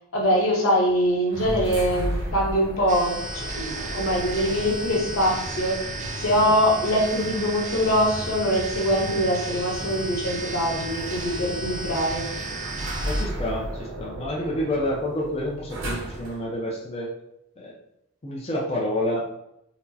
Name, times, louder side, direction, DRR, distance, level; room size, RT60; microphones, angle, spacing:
voice 1, 0.1-5.9 6.2-12.3, equal, 80° left, -2 dB, 1.0 m, -23 dB
sound 1, 1.3-16.5, right 1 dB, 60° right, 0.7 m, -34 dB
sound 2, 2.9-13.3, right 2 dB, 35° right, 0.4 m, -35 dB
voice 2, 13.1-17.1 17.6-17.7 18.2-19.2, left 1 dB, 30° left, -3 dB, 0.5 m, -28 dB
4.2 x 2.1 x 2.7 m, 0.80 s
head